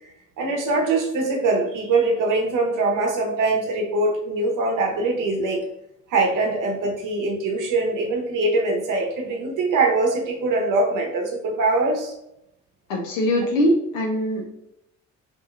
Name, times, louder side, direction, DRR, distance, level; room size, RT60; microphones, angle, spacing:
voice 1, 0.4-5.7 6.1-12.1, right 2 dB, 60° right, 2 dB, 0.8 m, -22 dB
voice 2, 12.9-14.5, equal, 85° left, 0 dB, 0.8 m, -22 dB
2.7 x 2.6 x 2.4 m, 0.79 s
hypercardioid pair, 50°, 36 cm